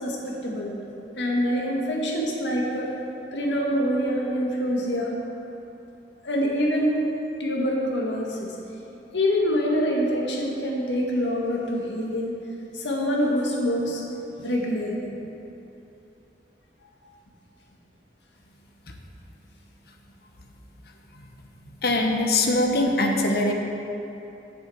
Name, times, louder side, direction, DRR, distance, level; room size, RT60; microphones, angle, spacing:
voice 1, 0.0-0.7 1.2-2.9 3.3-5.1 6.2-7.0 7.4-8.5 9.1-12.4 12.7-14.0 14.4-15.0, equal, 90° left, -2 dB, 1.8 m, -25 dB
voice 2, 21.8-23.5, left 2 dB, 60° left, 2 dB, 1.1 m, -22 dB
8.0 x 7.1 x 7.9 m, 2.9 s
head